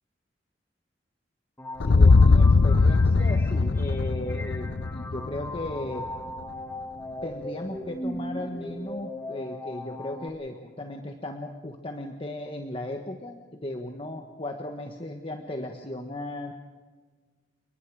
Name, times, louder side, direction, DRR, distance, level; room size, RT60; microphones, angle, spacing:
sound 1, 1.6-10.3, left 1 dB, 15° left, 1.7 m, -38 dB
sound 2, 1.8-5.9, left 3 dB, 85° left, 0.6 m, -20 dB
voice 1, 1.8-6.1 7.2-16.5, left 1 dB, 30° left, 4 dB, 1.5 m, -36 dB
29.5 x 20.5 x 4.9 m, 1.4 s
head